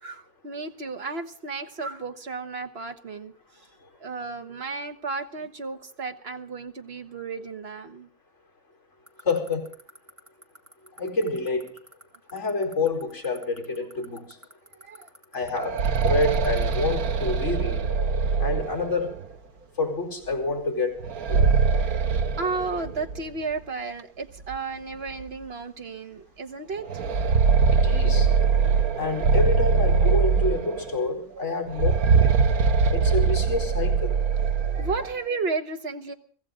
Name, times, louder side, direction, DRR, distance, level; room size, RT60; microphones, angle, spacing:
voice 1, 0.0-3.3 4.0-8.1 14.8-15.1 21.8-27.5 28.8-28.9 31.3-31.6 34.5-36.1, right 4 dB, 45° right, 1.6 m, -33 dB
sound 1, 9.1-16.7, right 1 dB, 20° right, 2.1 m, -46 dB
voice 2, 9.2-9.7 11.0-11.7 12.3-14.2 15.3-17.8 18.4-19.1 19.8-21.0 21.3-21.5 27.7-28.3 29.0-32.3 32.9-34.2, left 3 dB, 50° left, 5.0 m, -28 dB
sound 2, 15.4-19.2 21.0-23.2 23.5-23.6 24.5-24.6 25.1-25.2 26.8-31.0 31.7-35.1, right 5 dB, 80° right, 1.5 m, -22 dB
24.0 x 15.5 x 3.8 m
omnidirectional pair, 1.5 m